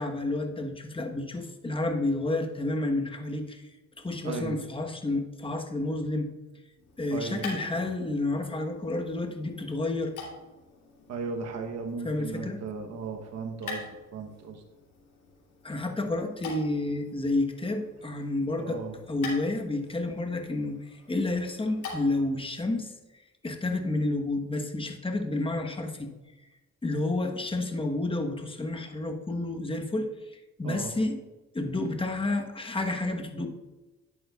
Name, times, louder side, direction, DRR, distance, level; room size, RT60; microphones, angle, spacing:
voice 1, 0.0-3.7 4.0-6.3 7.0-10.1 12.0-12.6 15.6-18.8 19.1-22.9 23.4-26.1 26.8-31.2 31.5-33.5, left 2 dB, 20° left, 4 dB, 1.2 m, -30 dB
voice 2, 4.2-4.6 7.1-7.4 11.1-14.6 18.6-19.0 30.6-30.9, right 4 dB, 60° right, 3 dB, 1.1 m, -36 dB
sound 1, 6.7-22.3, left 3 dB, 85° left, 3.1 m, -46 dB
11.0 x 8.7 x 2.4 m, 1.1 s
cardioid pair, 90°, 30 cm